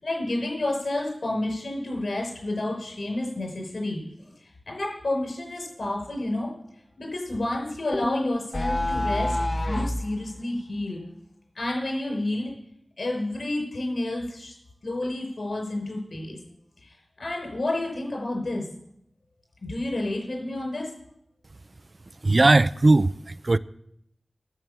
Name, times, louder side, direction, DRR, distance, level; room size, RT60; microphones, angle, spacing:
voice 1, 0.0-6.5 7.0-9.4 9.7-11.0 11.5-12.5 13.0-14.5 14.8-16.4 16.8-18.7 19.6-20.9, left 1 dB, 70° left, 5.8 m, -30 dB
sound 1, 7.9-10.1, left 1 dB, 35° left, 0.7 m, -27 dB
voice 2, 22.2-23.6, right 2 dB, 45° right, 0.4 m, -19 dB
11.0 x 8.0 x 7.0 m
wide cardioid pair, 70°, 0 cm